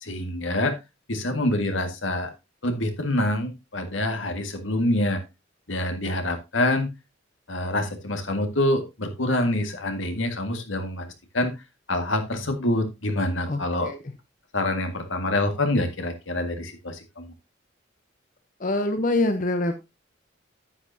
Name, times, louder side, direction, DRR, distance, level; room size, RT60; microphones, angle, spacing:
voice 1, 0.0-0.7 1.1-2.3 2.6-5.2 5.7-6.9 7.5-11.1 11.3-11.5 11.9-13.9 14.5-17.3, left 1 dB, 80° left, 6 dB, 1.8 m, -26 dB
voice 2, 18.6-19.8, left 2 dB, 45° left, 7 dB, 0.9 m, -24 dB
9.6 x 9.2 x 2.7 m, 0.23 s
head